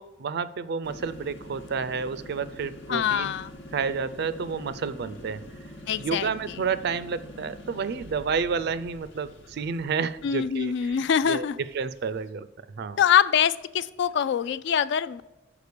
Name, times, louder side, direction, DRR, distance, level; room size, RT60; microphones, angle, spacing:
voice 1, 0.0-3.3 3.7-5.4 6.0-11.5 11.7-12.5 12.8-13.0, right 5 dB, 55° right, 15 dB, 0.4 m, -30 dB
sound 1, 0.8-12.3, left 1 dB, 80° left, 1.2 m, -45 dB
voice 2, 2.9-3.5 5.9-6.6 10.2-11.6 13.0-15.2, left 8 dB, 65° left, 16 dB, 0.3 m, -24 dB
6.6 x 5.0 x 6.7 m, 1.0 s
head